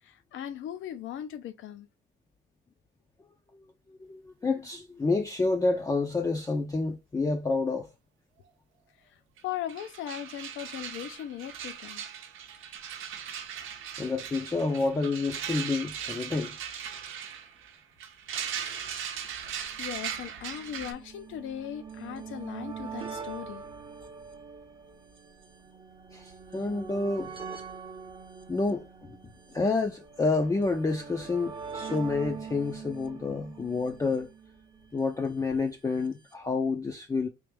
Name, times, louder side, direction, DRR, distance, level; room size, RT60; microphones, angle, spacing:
voice 1, 0.0-1.9 9.0-9.2 9.4-12.1 19.8-23.6, left 11 dB, 80° left, 0.6 m, -38 dB
voice 2, 3.5-7.9 14.0-16.6 26.1-27.5 28.5-29.2 29.5-34.3 34.9-37.3, left 3 dB, 15° left, 0.5 m, -29 dB
sound 1, 9.4-9.5 9.7-20.9, right 8 dB, 85° right, 0.7 m, -39 dB
sound 2, 19.8-35.1 36.1-36.2 36.3-36.4, right 6 dB, 25° right, 0.7 m, -43 dB
3.4 x 2.5 x 3.2 m
cardioid pair, 90°, 20 cm